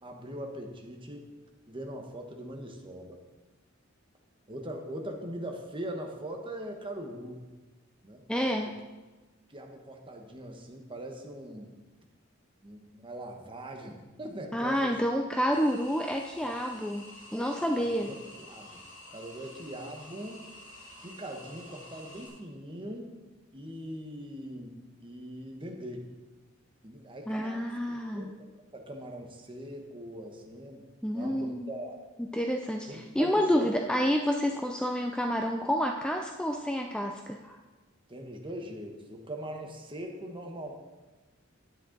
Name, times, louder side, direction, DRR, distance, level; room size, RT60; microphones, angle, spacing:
voice 1, 0.0-1.3 1.7-3.2 4.5-7.5 8.0-8.2 8.6-8.7 9.5-11.7 12.6-14.9 17.8-20.5 21.0-23.2 23.5-26.1 26.8-28.3 28.7-30.9 31.1-32.0 32.9-33.7 38.1-40.7, right 1 dB, 25° right, 2 dB, 1.2 m, -41 dB
voice 2, 8.3-8.7 14.5-17.1 17.3-18.1 27.3-28.3 31.0-31.7 32.2-37.6, equal, 5° left, 3 dB, 0.4 m, -29 dB
sound 1, 15.5-22.3, left 1 dB, 40° left, 2.7 m, -49 dB
10.0 x 9.3 x 3.9 m, 1.2 s
head